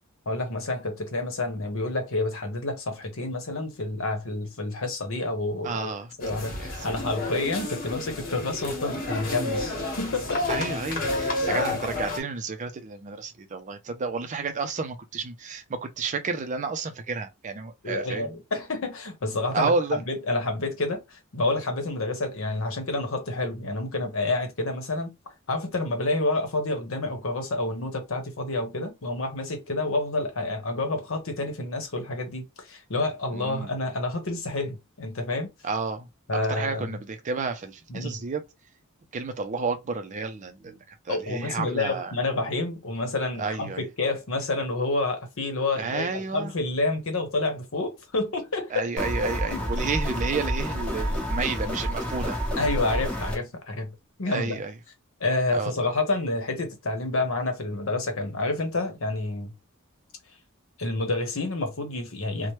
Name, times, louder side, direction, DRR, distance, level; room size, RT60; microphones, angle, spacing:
voice 1, 0.3-5.9 6.2-10.6 11.5-11.8 17.8-25.1 25.5-35.5 36.3-37.0 37.9-38.3 41.1-48.9 49.5-49.6 52.6-53.9 54.2-54.6 55.2-59.5 60.8-62.5, left 2 dB, 70° left, 0.9 m, -29 dB
voice 2, 5.6-6.1 6.6-6.7 10.5-18.4 19.5-20.0 33.3-33.7 35.6-36.1 36.5-38.4 39.1-40.8 41.1-42.1 43.4-43.9 45.8-46.5 48.7-52.4 54.3-54.7 55.5-55.7, right 4 dB, 35° right, 0.4 m, -31 dB
sound 1, 6.2-12.2, left 2 dB, 45° left, 1.1 m, -30 dB
sound 2, 49.0-53.4, equal, 5° left, 0.9 m, -29 dB
3.0 x 2.1 x 3.0 m
head